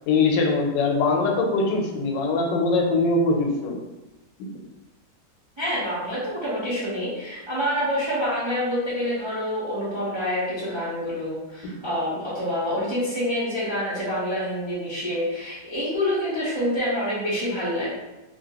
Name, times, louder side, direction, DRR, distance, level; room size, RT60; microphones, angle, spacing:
voice 1, 0.1-3.8 11.6-11.7, left 3 dB, 85° left, 2 dB, 1.3 m, -22 dB
voice 2, 5.6-17.9, equal, 35° right, -9 dB, 0.4 m, -27 dB
2.9 x 2.8 x 2.8 m, 1.0 s
omnidirectional pair, 1.9 m